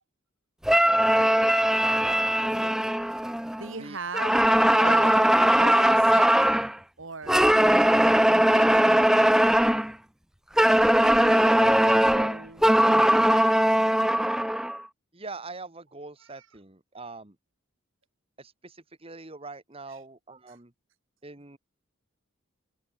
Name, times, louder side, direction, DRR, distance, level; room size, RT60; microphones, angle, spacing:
sound 1, 0.6-3.7 4.1-6.7 7.3-9.9 10.6-14.8, right 1 dB, 5° right, 0.3 m, -20 dB
voice 1, 1.8-2.8 3.8-4.0 11.1-11.7 15.1-17.4 18.4-20.7 21.2-21.6, right 3 dB, 30° right, 1.8 m, -43 dB
voice 2, 3.6-6.7 7.0-9.7 11.0-14.3 16.3-16.5 20.5-20.6, right 4 dB, 65° right, 1.9 m, -41 dB
head